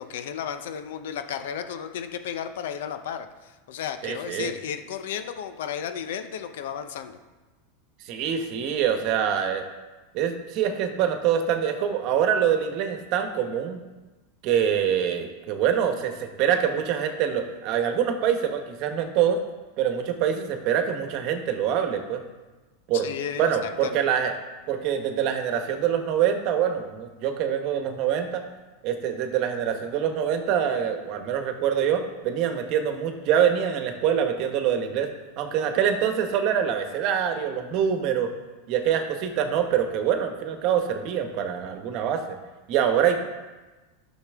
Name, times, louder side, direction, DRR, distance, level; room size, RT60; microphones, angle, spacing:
voice 1, 0.0-7.2 22.9-24.1, left 8 dB, 75° left, 9 dB, 0.8 m, -34 dB
voice 2, 4.0-4.5 8.0-9.6 10.1-13.8 14.4-19.4 19.8-22.2 22.9-23.1 23.4-24.3 24.7-28.4 28.8-35.1 35.4-38.3 38.7-42.4 42.7-43.2, right 8 dB, 45° right, 6 dB, 1.1 m, -25 dB
12.0 x 6.2 x 3.6 m, 1.2 s
supercardioid pair, 140°, 0 cm